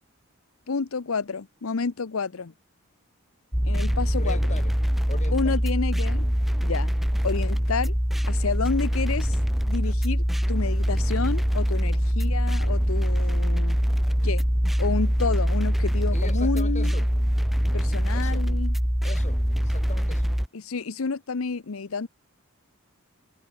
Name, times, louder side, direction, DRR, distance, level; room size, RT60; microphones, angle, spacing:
voice 1, 0.7-2.5 3.7-4.4 5.3-6.2 6.6-6.9 7.2-7.9 8.3-9.4 9.7-13.8 14.2-14.5 14.8-16.9 17.7-18.8 20.5-22.1, left 4 dB, 70° left, 0.7 m, -30 dB
sound 1, 3.5-20.5, equal, ahead, 0.3 m, -23 dB
voice 2, 4.1-4.8 5.1-5.6 16.1-17.1 18.1-18.5 19.0-20.3, left 2 dB, 35° left, 2.2 m, -40 dB
sound 2, 7.2-7.6 8.4-8.9 9.4-9.5 10.1-10.5 11.3-11.4 12.3-12.4 12.8-12.9 13.2-13.4 14.0-14.1, right 2 dB, 75° right, 6.6 m, -61 dB
head